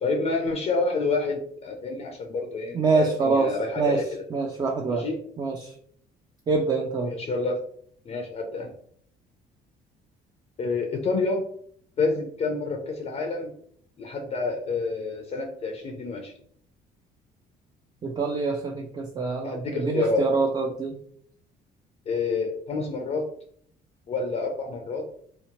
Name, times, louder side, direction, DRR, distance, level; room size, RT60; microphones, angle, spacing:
voice 1, 0.0-4.0 4.9-5.2 7.1-7.6 8.1-8.7 10.6-11.4 12.0-13.5 14.0-16.3 19.4-20.3 22.1-23.3 24.1-25.1, left 3 dB, 40° left, 2 dB, 0.4 m, -28 dB
voice 2, 2.7-4.0 4.3-5.0 5.4-5.7 6.5-7.1 18.0-21.0, right 4 dB, 25° right, 1 dB, 0.3 m, -25 dB
2.8 x 2.0 x 2.9 m, 0.62 s
cardioid pair, 110°, 17 cm